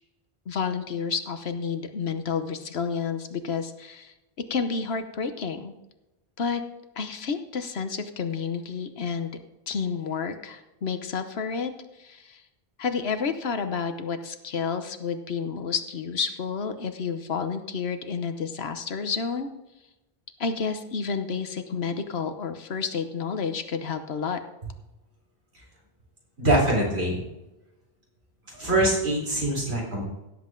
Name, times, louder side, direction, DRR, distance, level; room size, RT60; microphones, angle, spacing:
voice 1, 0.5-4.1 4.5-5.7 6.4-6.6 7.0-9.3 9.7-11.7 12.0-12.4 12.8-19.5 20.4-24.4, left 5 dB, 75° left, 9 dB, 1.2 m, -30 dB
voice 2, 26.4-27.2 28.5-30.1, right 1 dB, 80° right, -3 dB, 4.5 m, -23 dB
16.5 x 7.8 x 3.8 m, 0.98 s
omnidirectional pair, 1.1 m